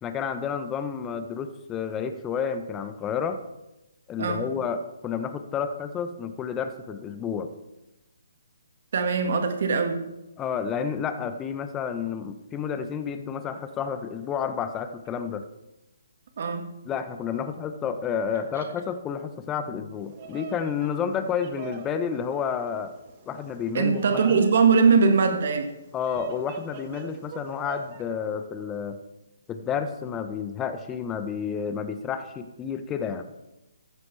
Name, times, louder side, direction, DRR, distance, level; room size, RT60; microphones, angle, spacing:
voice 1, 0.0-3.4 4.1-7.5 10.4-15.4 16.8-22.9 23.3-24.5 25.9-29.0 29.5-33.3, left 7 dB, 15° left, 9 dB, 1.1 m, -30 dB
voice 2, 8.9-10.0 16.4-16.7 23.7-25.7, right 5 dB, 55° right, 5 dB, 2.0 m, -21 dB
Bird vocalization bird call bird song, 20.0-28.0, right 4 dB, 35° right, 1.6 m, -43 dB
14.5 x 13.0 x 3.5 m, 0.95 s
figure-of-eight pair, 140°, 0 cm